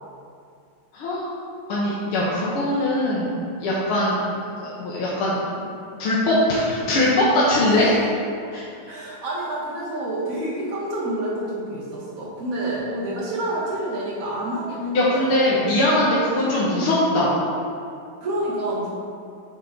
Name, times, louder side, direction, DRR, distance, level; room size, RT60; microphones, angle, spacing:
voice 1, 0.9-1.3 1.7-5.7 6.0-7.9 8.5-9.0 14.9-17.3, left 1 dB, 75° left, -7 dB, 1.9 m, -21 dB
voice 2, 7.6-8.0 8.8-15.7 18.2-18.9, right 1 dB, 40° right, -6 dB, 1.9 m, -28 dB
7.9 x 5.3 x 3.9 m, 2.4 s
omnidirectional pair, 2.4 m